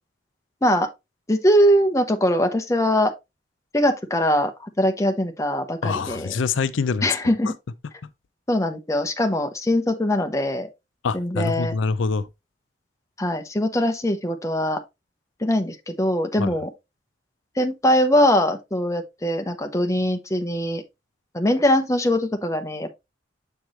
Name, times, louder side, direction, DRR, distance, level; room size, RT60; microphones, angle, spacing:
voice 1, 1.3-3.1 3.7-6.3 7.0-7.5 8.5-10.7 11.1-11.7 13.2-14.8 15.4-16.7 17.6-20.8 21.3-22.9, equal, 15° left, 0.8 m, -22 dB
voice 2, 5.8-7.3 11.0-12.3 16.4-16.5, left 5 dB, 85° left, 0.5 m, -25 dB
7.5 x 4.6 x 3.2 m
head